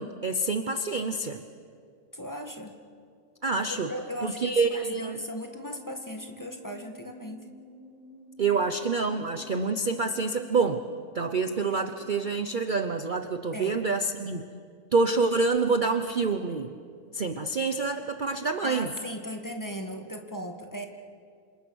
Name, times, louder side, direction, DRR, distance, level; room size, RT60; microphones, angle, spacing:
voice 1, 0.0-1.4 3.4-3.9 4.2-5.2 8.4-10.8 11.1-14.4 14.9-16.7 17.1-18.9, right 4 dB, 40° right, 8 dB, 0.9 m, -27 dB
voice 2, 2.1-2.8 3.7-7.4 13.5-13.8 18.6-20.9, equal, 15° left, 3 dB, 1.8 m, -37 dB
sound 1, 5.5-12.9, left 1 dB, 85° right, 5.4 m, -52 dB
28.5 x 27.0 x 6.3 m, 2.2 s
omnidirectional pair, 1.5 m